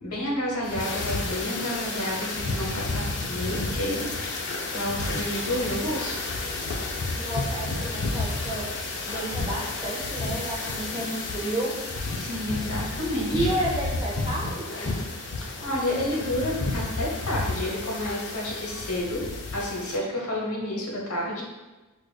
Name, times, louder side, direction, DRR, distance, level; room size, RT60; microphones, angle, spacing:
voice 1, 0.0-6.2 10.9-11.1 12.2-13.5 15.4-21.4, left 1 dB, 85° left, -2 dB, 0.9 m, -30 dB
sound 1, 0.6-20.0, left 3 dB, 55° left, 0.5 m, -31 dB
voice 2, 7.1-8.7 9.0-11.8 13.3-15.0, right 1 dB, 20° right, -2 dB, 0.5 m, -31 dB
4.7 x 2.4 x 2.2 m, 1.1 s
head